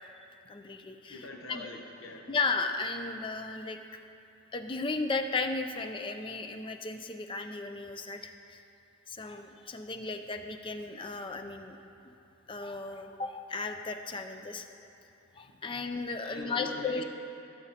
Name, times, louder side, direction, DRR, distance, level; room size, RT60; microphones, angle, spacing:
voice 1, 0.5-1.7 2.3-3.8 4.5-8.6 9.1-11.8 12.0-12.1 12.5-14.7 15.4-17.0, left 3 dB, 25° left, 6 dB, 0.4 m, -35 dB
voice 2, 1.1-2.3 16.2-17.0, left 3 dB, 80° left, 1 dB, 0.8 m, -42 dB
17.0 x 7.1 x 2.8 m, 2.7 s
head